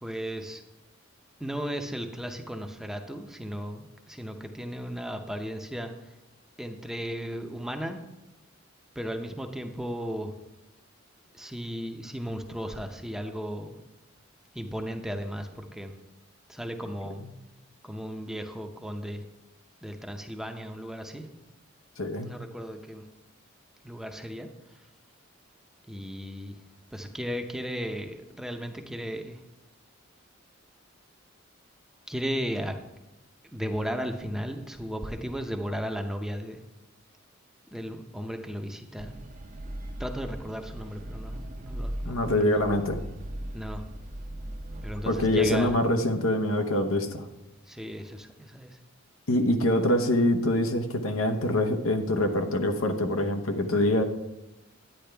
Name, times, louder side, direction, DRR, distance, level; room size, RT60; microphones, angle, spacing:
voice 1, 0.0-0.6 1.4-6.1 6.6-8.0 9.0-10.3 11.3-13.8 14.5-15.9 16.5-17.2 17.8-19.2 19.8-21.2 22.2-23.0 23.8-24.5 25.9-26.5 26.9-29.4 32.1-32.7 33.5-36.6 37.7-39.2 40.0-42.6 43.5-43.8 44.8-45.8 47.7-48.8, equal, ahead, 5 dB, 0.7 m, -35 dB
voice 2, 22.0-22.3 42.0-43.0 45.1-47.2 49.3-54.0, left 1 dB, 90° left, 6 dB, 0.9 m, -25 dB
sound 1, 39.0-45.7, right 1 dB, 40° right, 0.7 m, -38 dB
10.5 x 9.0 x 3.4 m, 0.98 s
head